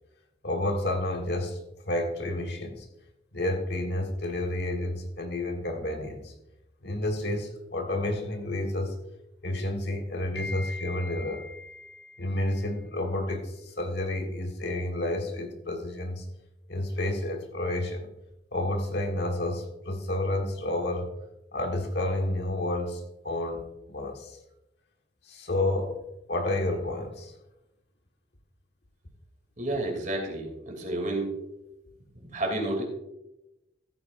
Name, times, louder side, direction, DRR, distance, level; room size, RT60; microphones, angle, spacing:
voice 1, 0.4-2.9 3.3-6.3 6.8-8.9 9.4-16.2 16.7-18.1 18.5-21.1 21.5-23.6 23.9-24.4 25.3-25.9 26.3-27.3, left 1 dB, 65° left, 3 dB, 1.5 m, -30 dB
voice 2, 29.6-31.3 32.3-32.8, right 1 dB, 45° right, 2 dB, 2.7 m, -30 dB
15.0 x 9.5 x 2.5 m, 0.90 s
head